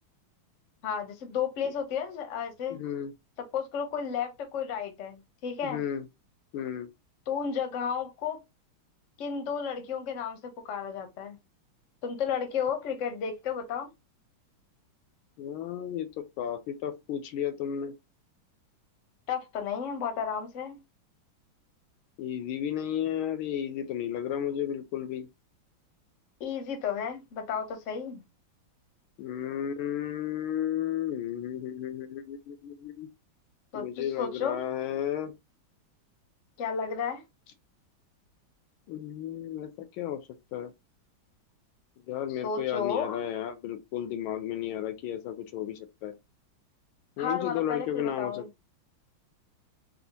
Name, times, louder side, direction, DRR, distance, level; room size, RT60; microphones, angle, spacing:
voice 1, 0.8-2.8 3.5-5.8 7.3-8.4 9.2-11.4 12.0-13.9 19.3-20.8 26.4-28.2 33.7-34.6 36.6-37.2 42.4-43.2 47.2-48.5, left 7 dB, 55° left, 0.9 m, -33 dB
voice 2, 2.7-3.1 5.6-6.0 6.5-6.9 15.4-17.9 22.2-25.3 29.2-33.1 33.7-35.3 38.9-40.2 40.5-40.7 42.0-46.2 47.2-48.5, left 10 dB, 80° left, 1.4 m, -33 dB
4.2 x 2.4 x 2.7 m
omnidirectional pair, 2.3 m